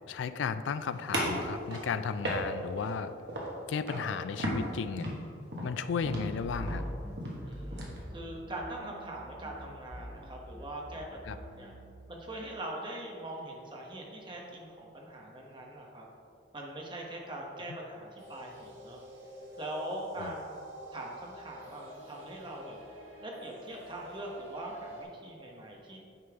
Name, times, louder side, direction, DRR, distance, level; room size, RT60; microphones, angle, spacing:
voice 1, 0.1-3.1 3.7-5.1 5.6-6.8 11.2-11.4 20.2-20.3, left 6 dB, 70° left, 12 dB, 0.3 m, -34 dB
sound 1, 1.1-3.0 3.3-3.6 3.9-4.1 4.4-8.0, right 1 dB, 60° right, 1.4 m, -35 dB
sound 2, 6.0-9.1 9.4-11.9, equal, 10° right, 0.6 m, -44 dB
voice 2, 7.4-11.7 12.1-16.1 16.5-19.0 19.6-20.6 20.9-22.8 23.2-26.0, right 1 dB, 25° right, -1 dB, 1.0 m, -42 dB
sound 3, 18.2-25.0, equal, 80° right, 1.8 m, -48 dB
9.6 x 5.4 x 3.5 m, 2.5 s
head